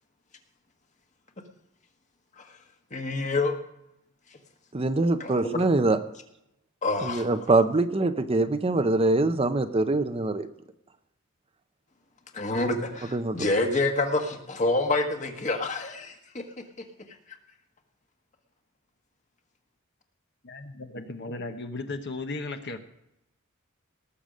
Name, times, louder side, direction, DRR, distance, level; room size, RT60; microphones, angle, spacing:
voice 1, 2.9-3.5 5.2-5.7 6.8-7.3 12.3-16.4, left 2 dB, 35° left, 4 dB, 1.5 m, -27 dB
voice 2, 4.7-6.0 7.0-10.5 13.1-13.4, right 2 dB, 30° right, 9 dB, 0.6 m, -24 dB
voice 3, 20.4-22.8, left 2 dB, 55° left, 6 dB, 1.1 m, -36 dB
19.0 x 6.9 x 5.1 m, 0.84 s
head